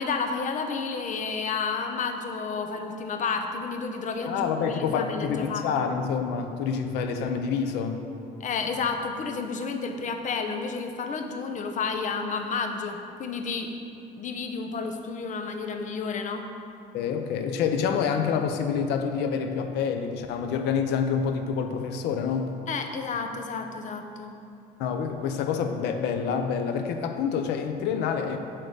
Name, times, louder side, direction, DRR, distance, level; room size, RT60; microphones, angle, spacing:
voice 1, 0.0-5.9 8.4-13.7 14.2-16.4 22.7-24.3, left 5 dB, 50° left, 5 dB, 0.8 m, -31 dB
voice 2, 4.3-8.0 16.9-22.5 24.8-28.4, left 6 dB, 85° left, 6 dB, 0.7 m, -27 dB
8.5 x 3.8 x 6.6 m, 2.7 s
cardioid pair, 110°, 17 cm